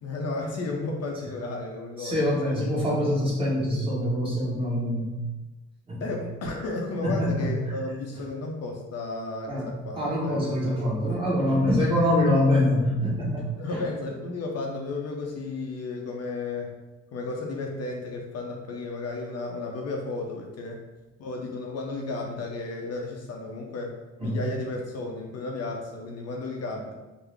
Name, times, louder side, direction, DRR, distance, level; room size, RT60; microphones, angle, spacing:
voice 1, 0.0-3.0 6.0-10.5 13.6-16.8 17.1-20.8 21.2-26.9, left 3 dB, 55° left, 1 dB, 0.6 m, -33 dB
voice 2, 2.0-5.2 5.9-6.1 7.0-7.5 9.5-9.7 10.0-13.8 24.2-24.4, left 1 dB, 15° right, -6 dB, 1.4 m, -25 dB
3.6 x 2.0 x 3.4 m, 1.1 s
cardioid pair, 90°, 30 cm